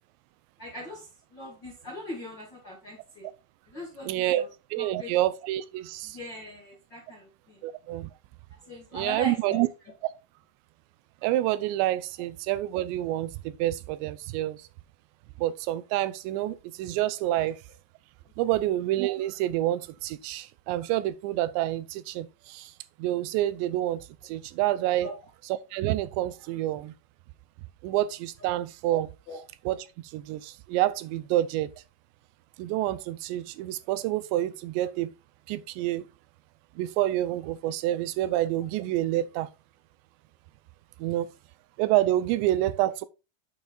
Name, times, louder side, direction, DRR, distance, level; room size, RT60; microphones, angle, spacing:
voice 1, 0.6-3.3 3.7-4.5 4.8-5.1 6.1-7.6 8.7-9.6 25.0-25.1 29.3-29.4, left 1 dB, 60° left, 1.1 m, -40 dB
voice 2, 4.0-4.4 4.7-6.2 7.6-8.1 8.9-9.7 11.2-14.6 15.4-17.6 18.4-22.7 23.0-25.1 25.7-26.9 27.8-29.1 29.7-29.9 30.1-31.7 32.6-35.1 35.5-36.0 36.8-39.5 41.0-41.3 41.8-43.1, right 14 dB, 85° right, 2.6 m, -28 dB
9.4 x 7.0 x 2.4 m
omnidirectional pair, 5.4 m